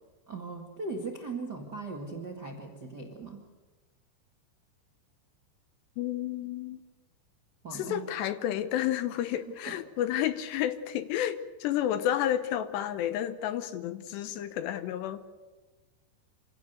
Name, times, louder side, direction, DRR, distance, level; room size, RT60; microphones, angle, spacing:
voice 1, 0.3-3.4 7.6-8.0 9.7-9.8, right 3 dB, 45° right, 1 dB, 1.3 m, -39 dB
voice 2, 6.0-6.8 7.7-15.2, left 11 dB, 75° left, 12 dB, 2.9 m, -31 dB
26.0 x 17.0 x 8.1 m, 1.2 s
omnidirectional pair, 5.3 m